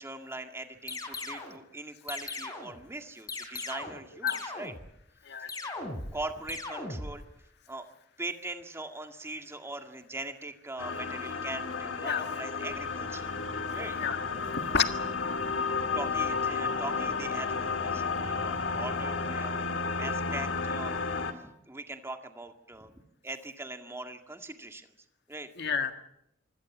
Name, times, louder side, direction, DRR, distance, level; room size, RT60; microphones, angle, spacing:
voice 1, 0.0-4.7 5.4-5.5 6.1-7.2 7.7-7.9 8.2-13.3 13.7-14.0 15.4-15.5 15.9-19.6 20.0-21.0 21.3-24.9 25.3-25.5, right 2 dB, 15° right, 5 dB, 2.0 m, -41 dB
sound 1, 0.9-1.6 2.1-2.8 3.3-4.0 4.3-4.9 5.5-6.2 6.5-7.2, left 2 dB, 20° left, 3.8 m, -38 dB
voice 2, 5.2-5.8 12.0-12.3 14.0-14.2 14.5-14.9 25.6-25.9, left 7 dB, 60° left, 7 dB, 1.7 m, -30 dB
sound 2, 10.8-21.3, left 4 dB, 80° left, 2.2 m, -32 dB
sound 3, 12.7-19.1, equal, 75° right, 3.3 m, -52 dB
25.5 x 16.5 x 8.4 m, 0.80 s
head